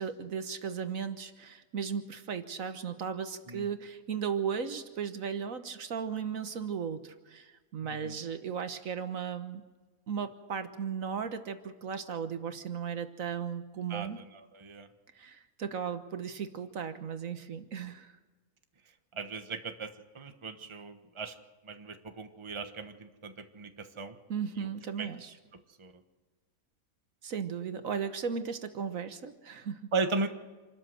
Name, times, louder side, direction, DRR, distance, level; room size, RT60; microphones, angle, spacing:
voice 1, 0.0-9.6 10.1-14.2 15.1-18.1 24.3-25.3 27.2-29.9, right 7 dB, 70° right, 9 dB, 1.5 m, -36 dB
voice 2, 7.8-8.2 13.9-14.9 19.1-21.3 21.6-24.2 24.6-24.7 25.0-25.1 25.8-25.9 29.9-30.3, right 4 dB, 20° right, 7 dB, 1.1 m, -37 dB
27.0 x 13.0 x 7.7 m, 1.3 s
omnidirectional pair, 1.5 m